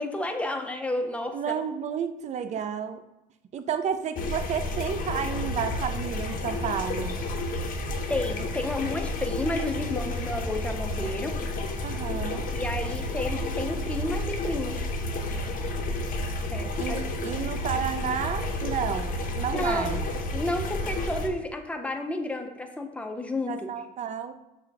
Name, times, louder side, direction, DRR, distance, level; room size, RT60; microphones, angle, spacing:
voice 1, 0.0-1.5 2.5-2.6 8.1-11.4 12.5-14.9 16.5-17.0 19.5-20.0 20.3-23.5, left 1 dB, 5° left, 5 dB, 0.5 m, -31 dB
voice 2, 1.3-3.0 3.5-7.2 11.8-12.5 16.8-20.0 23.5-24.3, right 7 dB, 45° right, 10 dB, 0.4 m, -31 dB
sound 1, 4.2-21.3, left 2 dB, 55° left, 0.6 m, -31 dB
6.1 x 2.2 x 3.9 m, 0.96 s
cardioid pair, 110°, 17 cm